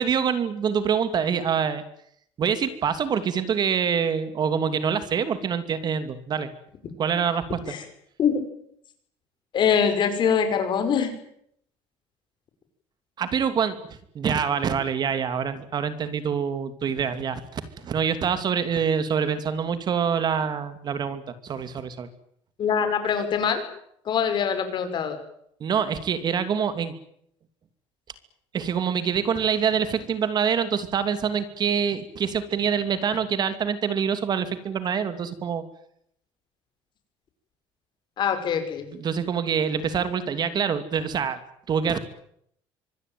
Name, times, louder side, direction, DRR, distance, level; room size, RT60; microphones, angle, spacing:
voice 1, 0.0-1.8 2.4-6.5 7.0-7.7 13.2-22.1 25.6-26.9 28.5-35.6 38.9-41.4 41.7-42.0, right 7 dB, 40° right, 11 dB, 2.7 m, -25 dB
voice 2, 9.5-11.1 22.6-23.6 24.1-25.2 38.2-38.9, left 7 dB, 45° left, 8 dB, 5.8 m, -23 dB
25.0 x 20.0 x 9.3 m, 0.71 s
cardioid pair, 140°, 11 cm